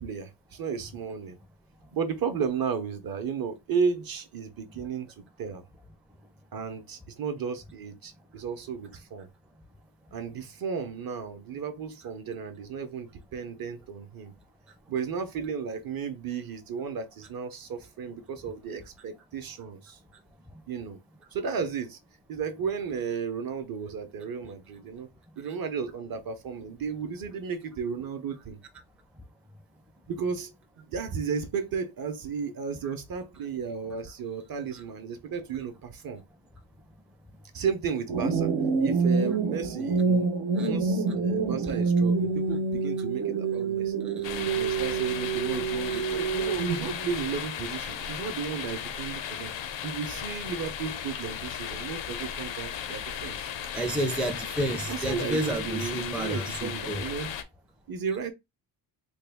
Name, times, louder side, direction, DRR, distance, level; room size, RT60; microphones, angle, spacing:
voice 1, 0.0-1.4 1.9-5.6 6.5-9.3 10.1-14.3 14.9-20.0 20.7-21.0 21.3-22.0 22.3-25.1 25.4-28.6 30.1-36.2 37.5-38.5 38.8-43.9 44.5-49.5 49.8-53.4 54.9-57.3 57.9-58.3, right 6 dB, 50° right, 0.7 m, -34 dB
sound 1, 38.1-47.0, right 4 dB, 90° right, 1.0 m, -27 dB
sound 2, 44.2-57.4, left 8 dB, 80° left, 0.6 m, -36 dB
voice 2, 53.7-57.0, right 1 dB, 5° right, 0.4 m, -31 dB
3.3 x 2.2 x 3.4 m
cardioid pair, 120°, 44 cm